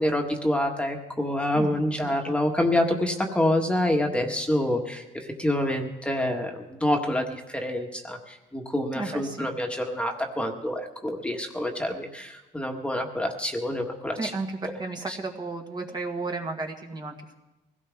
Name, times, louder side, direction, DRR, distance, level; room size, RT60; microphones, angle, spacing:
voice 1, 0.0-14.3 15.1-15.2, left 1 dB, 5° left, 2 dB, 1.6 m, -27 dB
voice 2, 1.6-2.3 8.9-9.5 14.2-17.3, right 3 dB, 25° right, 2 dB, 1.7 m, -34 dB
23.5 x 17.0 x 3.6 m, 1.0 s
cardioid pair, 110°, 17 cm